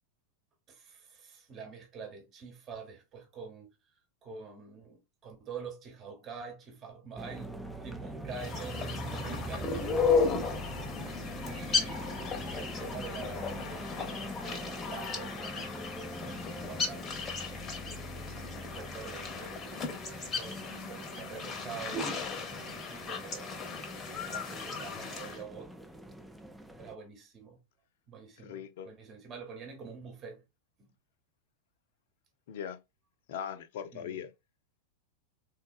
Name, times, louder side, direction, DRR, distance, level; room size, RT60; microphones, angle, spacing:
voice 1, 0.7-10.3 11.2-17.2 18.6-23.7 24.1-25.9 26.8-27.6 28.1-30.4 30.8-30.9 33.9-34.2, right 5 dB, 30° right, 1.0 m, -47 dB
sound 1, 7.2-26.9, right 1 dB, ahead, 0.4 m, -43 dB
sound 2, 8.3-25.4, left 5 dB, 25° left, 0.8 m, -35 dB
voice 2, 28.4-28.9 32.5-32.8 33.3-34.3, left 8 dB, 55° left, 0.5 m, -39 dB
3.4 x 2.2 x 2.4 m
figure-of-eight pair, 90°, 0 cm